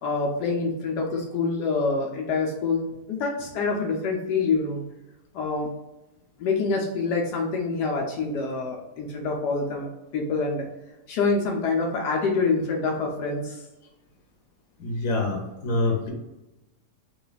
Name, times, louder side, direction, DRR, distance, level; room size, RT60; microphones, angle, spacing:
voice 1, 0.0-2.8 3.1-4.8 5.3-5.7 6.4-9.9 10.1-10.7 11.1-13.6, left 4 dB, 80° left, -1 dB, 1.2 m, -26 dB
voice 2, 14.8-16.1, left 2 dB, 60° left, 1 dB, 1.3 m, -26 dB
4.0 x 2.3 x 3.9 m, 1.0 s
omnidirectional pair, 1.8 m